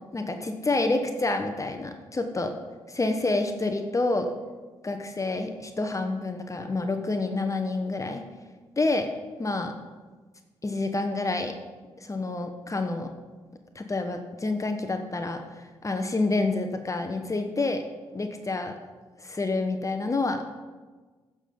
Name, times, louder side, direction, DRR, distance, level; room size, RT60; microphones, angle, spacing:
voice 1, 0.1-2.5 2.9-4.3 4.8-8.2 8.8-9.1 9.4-9.7 10.6-11.5 12.0-13.1 13.7-17.8 18.1-18.7 19.2-20.5, left 2 dB, 30° left, 5 dB, 1.1 m, -28 dB
15.0 x 7.0 x 3.9 m, 1.3 s
hypercardioid pair, 45°, 11 cm